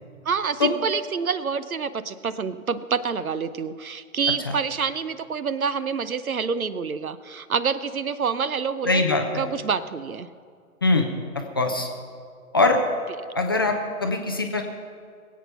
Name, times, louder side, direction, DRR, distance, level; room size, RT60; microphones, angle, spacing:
voice 1, 0.2-9.0 9.3-10.3, right 6 dB, 70° right, 15 dB, 0.9 m, -27 dB
voice 2, 8.9-9.4 10.8-11.1 11.3-11.9 12.5-12.8 13.4-14.6, left 3 dB, 15° left, 3 dB, 0.5 m, -22 dB
21.5 x 8.4 x 5.6 m, 2.2 s
figure-of-eight pair, 130°, 43 cm